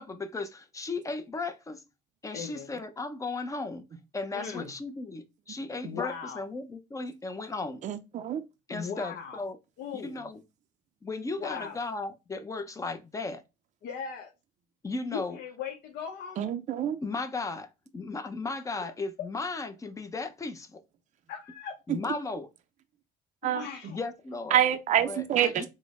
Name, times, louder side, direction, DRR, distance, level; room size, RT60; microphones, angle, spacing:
voice 1, 0.0-1.8 2.2-3.9 4.1-7.8 8.7-9.6 9.9-10.4 11.0-13.4 14.8-15.4 17.0-20.8 21.9-22.5 23.9-24.6 25.1-25.7, left 3 dB, 20° left, 0.5 m, -36 dB
voice 2, 2.3-2.8 4.3-4.7 5.8-6.5 8.7-9.4 9.8-10.2 11.4-11.8 13.8-14.3 15.1-16.5 21.3-21.8 23.4-24.0, left 6 dB, 70° left, 0.7 m, -38 dB
voice 3, 7.8-8.4 16.4-17.0 23.4-23.6 24.5-25.7, right 10 dB, 45° right, 0.4 m, -26 dB
3.7 x 2.1 x 3.5 m
cardioid pair, 110°, 17 cm